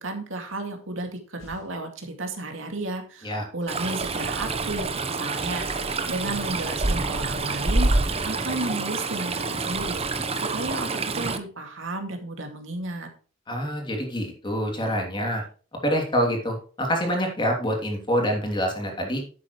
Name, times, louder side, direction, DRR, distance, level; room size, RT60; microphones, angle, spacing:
voice 1, 0.0-13.1, right 2 dB, 85° right, 4 dB, 2.3 m, -33 dB
sound 1, 1.4-1.7 3.8-4.6 5.3-7.9, left 1 dB, 85° left, 4.7 m, -46 dB
Stream, 3.7-11.4, right 3 dB, 30° right, 1.0 m, -27 dB
voice 2, 13.5-15.4 15.8-19.2, equal, 25° left, 1 dB, 2.9 m, -26 dB
11.0 x 8.2 x 3.2 m, 0.39 s
head